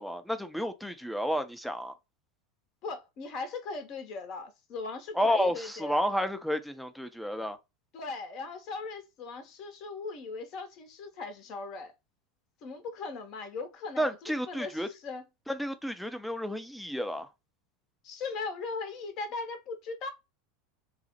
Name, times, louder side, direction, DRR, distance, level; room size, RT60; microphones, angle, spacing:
voice 1, 0.0-1.9 5.2-7.6 14.0-14.9 15.5-17.3, equal, ahead, 0.5 m, -31 dB
voice 2, 2.8-6.0 7.9-11.9 12.6-15.2 18.0-20.1, left 4 dB, 45° left, 0.7 m, -39 dB
3.9 x 2.0 x 2.8 m
figure-of-eight pair, 80°, 0 cm